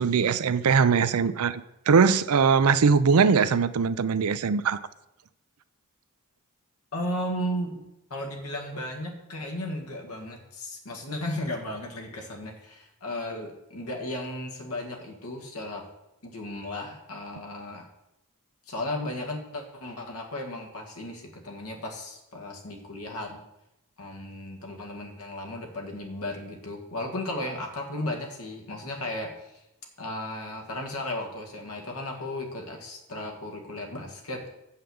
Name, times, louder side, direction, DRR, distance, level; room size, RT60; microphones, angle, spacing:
voice 1, 0.0-4.8, right 5 dB, 80° right, 14 dB, 0.5 m, -21 dB
voice 2, 6.9-7.8 8.1-15.8 16.2-17.9 18.7-23.4 24.0-29.6 30.0-34.5, left 1 dB, 80° left, 2 dB, 1.8 m, -35 dB
7.8 x 5.6 x 7.0 m, 0.88 s
head